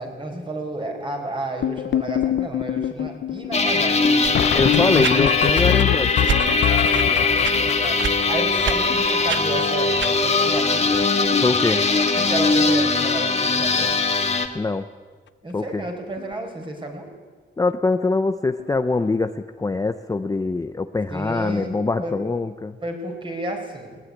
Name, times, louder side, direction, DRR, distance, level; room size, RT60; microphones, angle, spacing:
voice 1, 0.0-5.1 6.9-11.0 12.2-13.9 15.4-17.1 21.1-22.2 22.8-24.0, right 1 dB, 25° right, 3 dB, 4.7 m, -32 dB
sound 1, 1.6-9.8 10.1-10.2 10.4-10.7 10.9-11.5 11.8-12.0 12.8-12.9 13.4-13.5 13.7-13.9 16.2-16.3 18.6-18.7, left 11 dB, 70° left, 0.6 m, -25 dB
sound 2, 3.5-14.5, left 3 dB, 35° left, 1.9 m, -20 dB
sound 3, 4.2-4.4 5.0-5.2 6.2-6.4 6.9-7.1 7.4-7.6 8.0-8.2 8.6-8.8 9.3-9.4 10.0-10.1, right 8 dB, 85° right, 1.1 m, -26 dB
voice 2, 4.5-6.1 11.4-11.8 14.5-14.9 15.5-15.8 17.6-22.8, left 3 dB, 20° left, 9 dB, 0.7 m, -23 dB
20.0 x 19.5 x 9.9 m, 1.5 s
wide cardioid pair, 145°, 19 cm